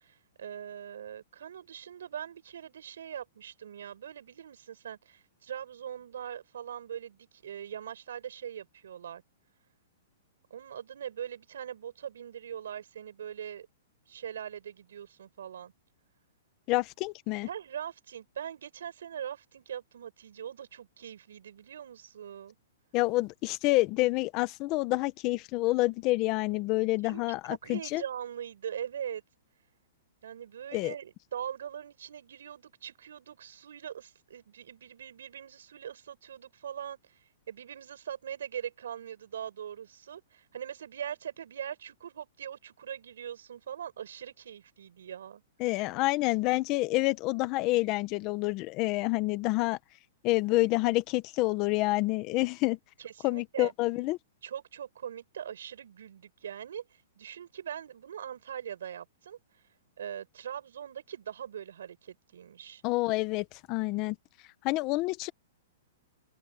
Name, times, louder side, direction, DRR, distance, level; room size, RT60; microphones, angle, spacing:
voice 1, 0.0-9.2 10.5-13.7 14.1-15.7 17.4-22.6 27.1-29.2 30.2-37.2 37.5-45.4 53.0-53.7 54.4-59.4 60.0-62.8, right 9 dB, 80° right, 7.8 m, -41 dB
voice 2, 16.7-17.5 22.9-28.0 30.7-30.9 45.6-49.8 50.2-52.8 53.2-54.2 62.8-64.2 64.6-65.3, left 20 dB, 30° left, 1.0 m, -28 dB
open air
hypercardioid pair, 160°, 0 cm